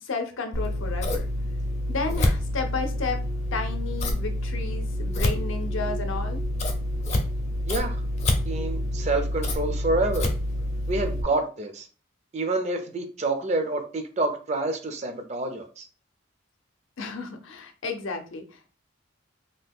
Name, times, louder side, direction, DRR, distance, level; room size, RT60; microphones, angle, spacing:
voice 1, 0.0-1.3 1.9-3.2 3.5-6.4 17.0-18.7, left 4 dB, 80° left, 0.6 m, -32 dB
Scissors, 0.5-11.2, left 1 dB, 35° left, 0.5 m, -27 dB
voice 2, 7.7-8.0 8.5-10.3 10.9-11.9 12.3-15.9, right 2 dB, 35° right, 0.4 m, -28 dB
2.8 x 2.2 x 3.5 m
head